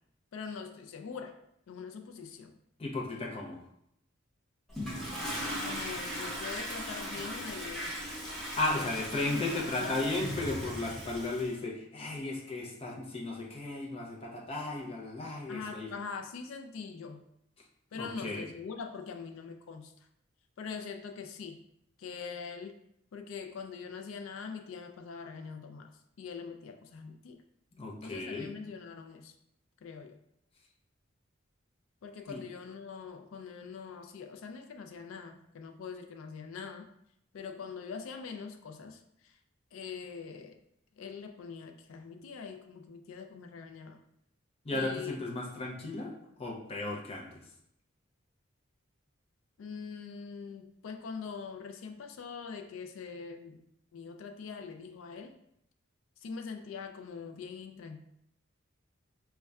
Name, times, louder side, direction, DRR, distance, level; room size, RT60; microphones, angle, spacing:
voice 1, 0.3-1.4 1.7-2.5 5.6-8.0 8.7-10.1 15.5-17.2 17.9-19.9 20.6-21.6 22.0-22.8 23.1-25.9 26.2-27.4 28.0-29.3 29.8-30.2 32.0-36.9 37.3-39.4 39.7-40.6 41.0-44.0 44.7-45.2 49.6-53.6 53.9-55.4 56.2-58.0, left 5 dB, 75° left, 6 dB, 0.4 m, -43 dB
voice 2, 2.8-3.6 8.6-15.9 17.9-18.5 27.7-28.5 32.3-32.4 44.6-47.4, left 2 dB, 30° left, -2 dB, 0.6 m, -35 dB
Toilet flush, 4.7-11.5, equal, ahead, 0.9 m, -38 dB
5.2 x 2.3 x 2.3 m, 0.75 s
head